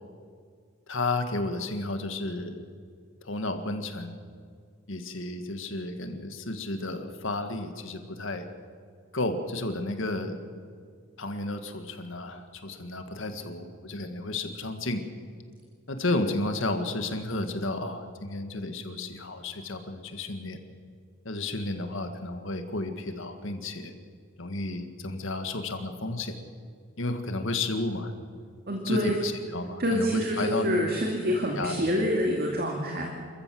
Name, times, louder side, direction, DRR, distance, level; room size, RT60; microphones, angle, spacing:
voice 1, 0.9-2.6 3.2-4.2 4.9-8.5 9.1-10.4 11.2-15.0 15.9-20.6 21.3-23.9 24.4-26.4 27.0-28.1 28.9-30.9 31.6-31.9, left 2 dB, 60° left, 7 dB, 1.8 m, -32 dB
voice 2, 28.7-29.2 29.8-33.1, equal, 45° right, 1 dB, 2.3 m, -27 dB
27.0 x 14.5 x 7.7 m, 2.1 s
head